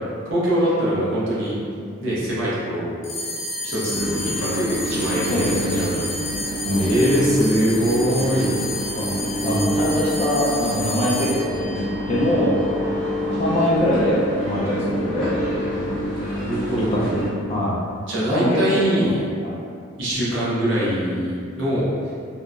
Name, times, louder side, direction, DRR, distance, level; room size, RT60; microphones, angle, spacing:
voice 1, 0.3-1.6 2.0-3.0 3.6-6.1 6.8-8.6 16.2-16.9 18.1-19.2 20.0-21.9, equal, 65° right, -8 dB, 0.8 m, -23 dB
sound 1, 3.0-13.7, left 2 dB, 85° left, 0.5 m, -31 dB
sound 2, 3.9-17.3, equal, 5° left, 0.8 m, -27 dB
voice 2, 5.3-5.8 6.6-6.9 9.0-9.2 9.4-11.8 12.1-12.6 13.4-15.4 16.7-17.8 18.3-18.9 19.4-19.5, left 1 dB, 30° left, -6 dB, 0.4 m, -23 dB
2.9 x 2.0 x 2.4 m, 2.3 s
head